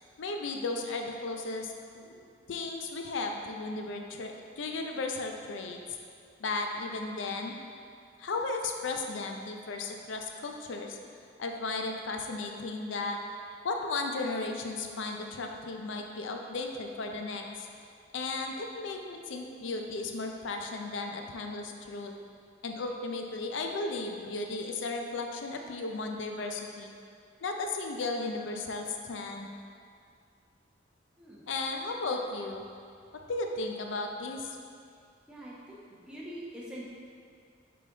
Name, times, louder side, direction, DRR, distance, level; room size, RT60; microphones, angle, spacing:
voice 1, 0.2-2.2 2.5-5.8 6.4-7.5 8.2-11.0 11.4-13.2 13.6-17.7 18.1-22.1 22.6-26.9 27.4-29.6 31.5-32.6 33.3-34.6, left 3 dB, 75° left, 3 dB, 0.5 m, -35 dB
voice 2, 31.2-31.5 35.3-35.8 36.1-36.8, equal, 5° right, -7 dB, 0.9 m, -43 dB
6.4 x 3.9 x 3.8 m, 2.3 s
head